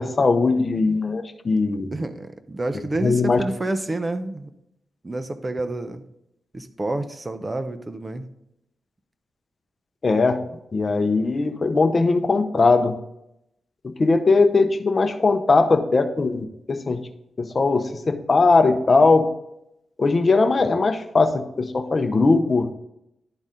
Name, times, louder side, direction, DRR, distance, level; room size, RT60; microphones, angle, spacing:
voice 1, 0.0-1.9 3.0-3.4 10.0-12.9 13.8-17.0 17.4-19.3 20.0-22.7, left 3 dB, 40° left, 7 dB, 0.8 m, -20 dB
voice 2, 1.9-4.5 5.0-6.0 6.5-8.3, right 2 dB, 25° right, 10 dB, 0.7 m, -29 dB
11.5 x 4.0 x 3.7 m, 0.83 s
cardioid pair, 90°, 0 cm